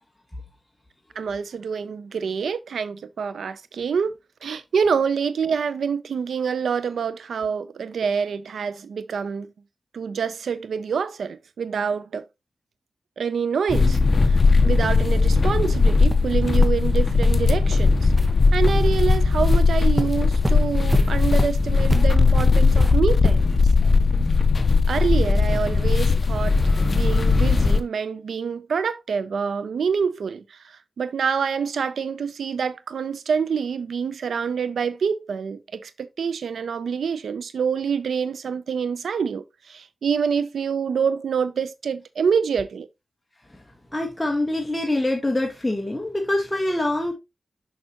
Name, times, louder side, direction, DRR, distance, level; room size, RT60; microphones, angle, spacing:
voice 1, 1.2-4.1 4.4-9.5 9.9-12.2 13.2-14.0 14.3-18.1 18.5-23.4 24.9-42.9, right 6 dB, 90° right, 0.5 m, -26 dB
sound 1, 13.7-27.8, left 4 dB, 50° left, 0.7 m, -18 dB
sound 2, 15.6-15.7 16.1-16.3 16.6-16.7 17.2-17.3 17.7-17.8 18.2-18.3 18.7-19.2 19.5-19.6 20.0-23.6, right 1 dB, 10° right, 1.0 m, -28 dB
voice 2, 43.9-47.1, left 1 dB, 10° left, 1.4 m, -24 dB
6.5 x 5.7 x 2.9 m
cardioid pair, 75°, 0 cm